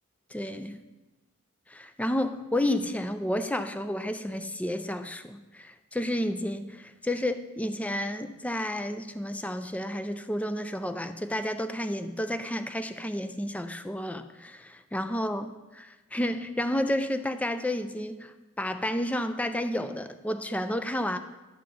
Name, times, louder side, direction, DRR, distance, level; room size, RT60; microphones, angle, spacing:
voice 1, 0.3-0.8 1.7-18.3 18.6-21.2, left 1 dB, 5° left, 9 dB, 0.4 m, -31 dB
11.5 x 3.9 x 6.7 m, 1.1 s
head